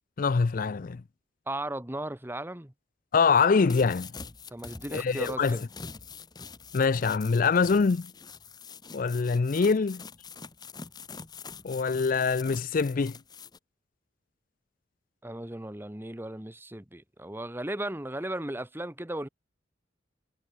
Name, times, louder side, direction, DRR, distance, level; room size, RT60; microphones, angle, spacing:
voice 1, 0.2-1.0 3.1-4.1 4.9-5.6 6.7-8.1 8.9-10.0 11.6-13.2, left 5 dB, 45° left, 0.4 m, -24 dB
voice 2, 1.5-2.7 4.5-5.6 15.2-19.3, right 1 dB, 10° right, 1.2 m, -36 dB
sound 1, 3.6-13.6, left 5 dB, 20° left, 0.8 m, -45 dB
head